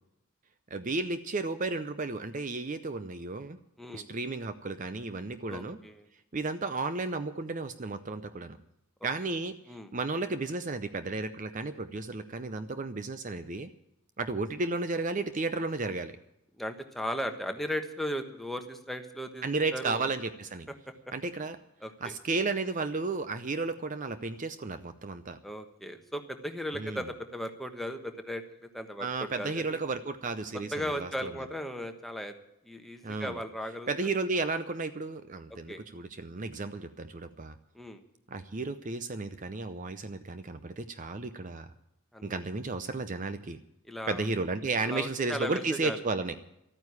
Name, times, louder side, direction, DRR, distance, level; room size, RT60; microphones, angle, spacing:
voice 1, 0.7-3.6 3.9-5.8 6.3-8.6 9.0-13.7 14.2-16.2 19.4-20.7 21.1-21.6 22.0-25.4 26.7-27.0 29.0-31.3 33.0-33.4 33.9-37.6 38.3-41.7 42.2-43.6 44.1-46.3, right 3 dB, 40° right, 11 dB, 0.6 m, -33 dB
voice 2, 5.5-6.1 9.7-9.9 16.6-19.4 19.7-20.1 21.8-22.1 25.4-29.8 30.7-32.3 32.6-33.9 35.7-35.8 37.7-38.0 42.1-42.2 43.9-44.2 44.8-46.0, equal, ahead, 5 dB, 1.2 m, -37 dB
13.5 x 9.4 x 9.6 m, 0.85 s
head